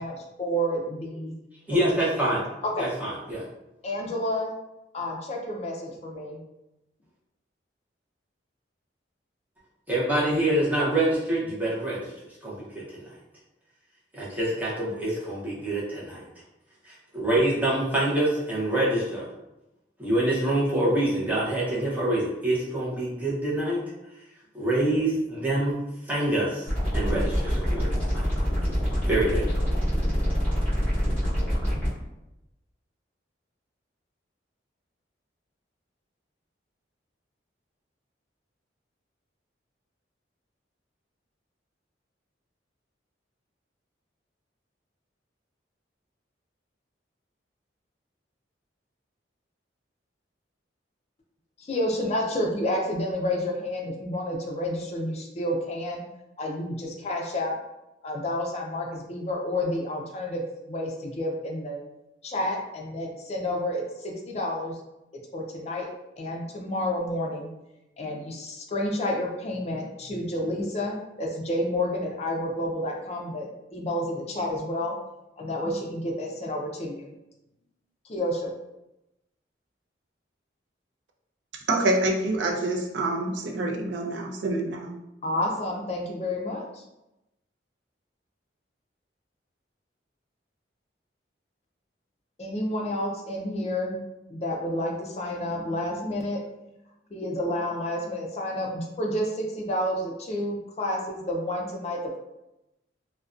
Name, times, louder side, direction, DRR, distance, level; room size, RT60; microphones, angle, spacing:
voice 1, 0.0-1.3 2.6-2.9 3.8-4.5 4.9-6.4 51.6-56.0 56.4-57.5 58.0-60.4 60.7-61.8 62.2-64.8 65.3-65.9 66.2-67.5 68.0-75.0 75.4-77.2 78.1-78.5 85.2-86.8 92.4-94.0 94.3-96.4 97.1-102.2, left 1 dB, 35° left, 0 dB, 0.4 m, -30 dB
voice 2, 1.7-2.5 2.8-3.4 9.9-12.1 12.4-13.1 14.1-16.2 16.8-19.2 20.0-23.8 24.5-25.8 26.0-26.7 26.9-28.2 29.1-29.5, right 1 dB, 10° right, -7 dB, 0.6 m, -26 dB
sound 1, 26.7-31.9, equal, 10° left, 0.9 m, -25 dB
voice 3, 81.7-84.9, right 2 dB, 75° right, 1 dB, 0.4 m, -26 dB
2.5 x 2.1 x 2.4 m, 0.93 s
head